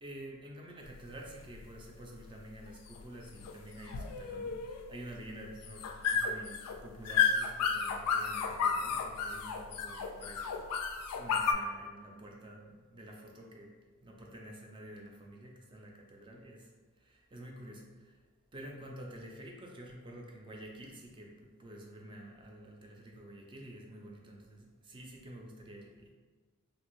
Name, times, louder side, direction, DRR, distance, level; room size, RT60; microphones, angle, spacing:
voice 1, 0.0-13.7 14.0-18.2 18.5-26.1, right 1 dB, 20° right, 0 dB, 0.4 m, -49 dB
sound 1, 0.8-11.5, left 6 dB, 85° left, 0.3 m, -33 dB
2.8 x 2.5 x 3.0 m, 1.4 s
head